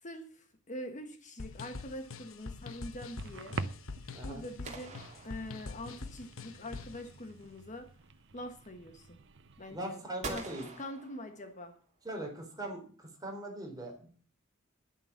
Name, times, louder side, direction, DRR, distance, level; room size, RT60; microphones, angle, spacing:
voice 1, 0.0-3.6 4.2-7.9 8.3-9.2 9.6-11.7, left 1 dB, 40° left, 6 dB, 1.5 m, -44 dB
sound 1, 1.4-7.0, left 4 dB, 80° left, 1.1 m, -45 dB
sound 2, 1.7-9.8, right 3 dB, 60° right, 0.8 m, -47 dB
voice 2, 4.1-4.4 9.7-10.7 12.0-14.1, right 1 dB, 20° right, 1 dB, 4.0 m, -41 dB
sound 3, 4.6-6.1 10.2-11.8, right 4 dB, 35° right, 2.7 m, -45 dB
11.0 x 9.5 x 7.3 m, 0.43 s
head